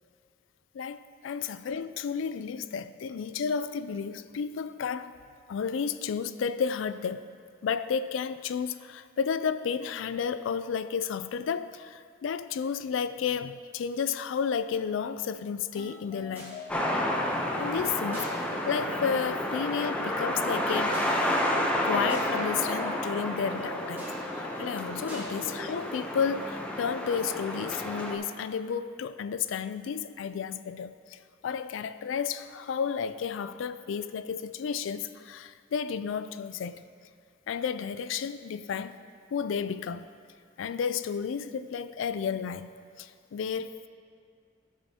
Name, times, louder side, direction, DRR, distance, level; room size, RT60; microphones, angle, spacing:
voice 1, 0.7-5.1 5.5-7.3 7.6-16.6 17.6-21.0 21.8-24.0 24.3-36.8 37.5-39.0 39.3-40.1 40.6-42.7 43.0-43.9, left 6 dB, 85° left, 13 dB, 0.3 m, -32 dB
sound 1, 15.8-27.9, left 2 dB, 10° right, 2.0 m, -44 dB
sound 2, 16.7-28.2, left 1 dB, 5° left, 0.6 m, -30 dB
13.5 x 6.3 x 2.8 m, 2.2 s
head